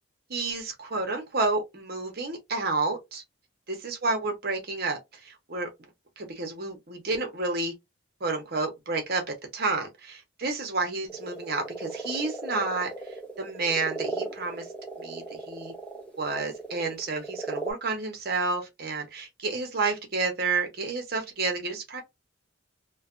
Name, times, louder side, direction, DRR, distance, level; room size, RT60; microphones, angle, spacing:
voice 1, 0.3-3.2 3.7-5.7 6.2-7.7 8.2-9.2 9.5-12.9 13.4-14.7 15.0-15.7 16.2-22.0, right 3 dB, 45° right, 1.0 m, -30 dB
sound 1, 11.1-17.7, right 3 dB, 5° left, 0.8 m, -37 dB
3.2 x 2.3 x 2.5 m
head